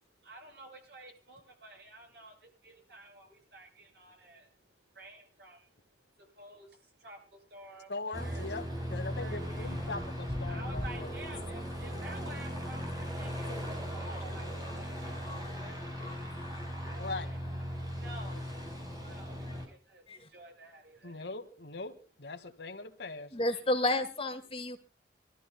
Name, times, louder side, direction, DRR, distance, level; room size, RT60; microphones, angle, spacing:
voice 1, 0.2-4.5 4.9-5.7 6.2-7.9 8.2-8.5 9.2-9.8 10.5-17.7 18.0-18.4 19.1-21.2 24.0-24.1, right 2 dB, 70° right, 7.2 m, -51 dB
voice 2, 7.9-11.1 17.0-17.3 21.0-23.3, left 3 dB, 75° left, 2.0 m, -41 dB
Aircraft, 8.1-19.7, equal, 20° right, 5.8 m, -38 dB
voice 3, 13.3-13.6 15.3-15.4 16.0-16.1 19.0-19.1 20.1-20.3 23.3-24.8, left 1 dB, 30° left, 1.9 m, -32 dB
26.5 x 14.0 x 2.2 m
head